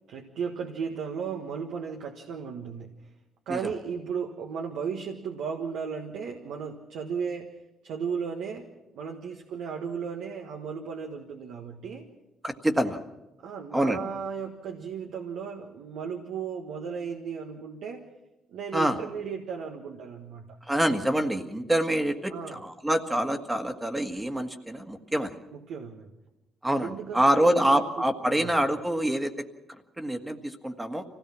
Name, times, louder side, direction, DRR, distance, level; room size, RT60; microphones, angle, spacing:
voice 1, 0.1-2.9 3.5-7.6 7.8-12.1 13.4-18.1 18.5-20.6 22.3-22.6 25.5-26.1 26.8-28.5, right 6 dB, 85° right, 2 dB, 1.5 m, -35 dB
voice 2, 12.4-13.0 13.7-14.0 18.7-19.0 20.7-25.3 26.6-29.3 30.0-31.0, right 1 dB, 10° right, 7 dB, 1.6 m, -26 dB
25.0 x 17.0 x 6.1 m, 0.99 s
cardioid pair, 90°, 0 cm